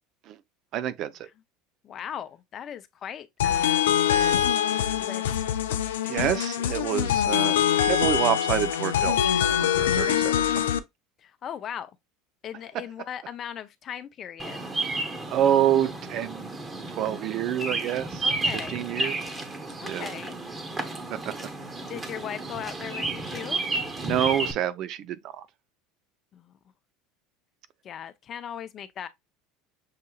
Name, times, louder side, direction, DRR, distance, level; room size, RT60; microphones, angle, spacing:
voice 1, 0.7-1.3 6.0-10.6 15.3-16.5 17.0-18.3 18.7-19.3 19.8-20.1 21.3-21.5 24.0-25.5, right 11 dB, 55° right, 0.5 m, -27 dB
voice 2, 1.8-4.4 5.0-5.3 11.2-11.9 12.4-14.6 18.2-18.9 19.8-20.4 21.8-23.6 26.3-26.5 27.8-29.1, left 9 dB, 45° left, 0.6 m, -38 dB
sound 1, 3.4-10.8, left 10 dB, 90° left, 0.4 m, -24 dB
Bird vocalization bird call bird song, 14.4-24.5, right 2 dB, 25° right, 1.1 m, -32 dB
6.6 x 2.7 x 2.3 m
hypercardioid pair, 90°, 0 cm